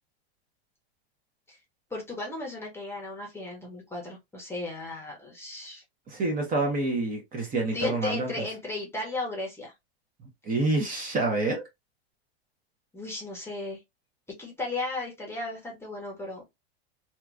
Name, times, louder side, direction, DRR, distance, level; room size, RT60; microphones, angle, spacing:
voice 1, 1.9-5.8 7.7-9.7 12.9-13.8 14.4-16.4, left 2 dB, 10° left, 1.0 m, -35 dB
voice 2, 6.1-8.3 10.5-11.6, right 2 dB, 25° right, 1.0 m, -27 dB
2.9 x 2.4 x 2.4 m
hypercardioid pair, 125°, 32 cm